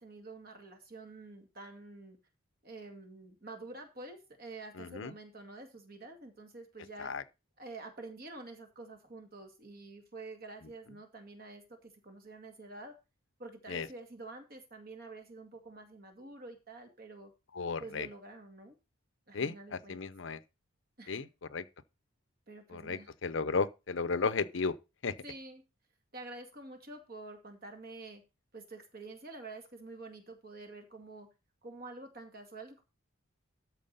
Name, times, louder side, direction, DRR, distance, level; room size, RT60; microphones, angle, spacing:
voice 1, 0.0-2.2 2.6-7.1 7.6-12.9 13.4-17.3 17.8-18.7 19.3-20.1 21.0-21.2 22.5-23.1 25.2-25.6 26.1-28.2 28.5-31.3 31.6-32.8, right 2 dB, 45° right, 2.1 m, -48 dB
voice 2, 4.8-5.1 7.0-7.2 13.7-13.9 17.5-18.1 19.3-20.4 21.1-21.6 22.7-24.7 25.0-25.1, left 4 dB, 65° left, 0.7 m, -34 dB
13.0 x 4.7 x 5.4 m
head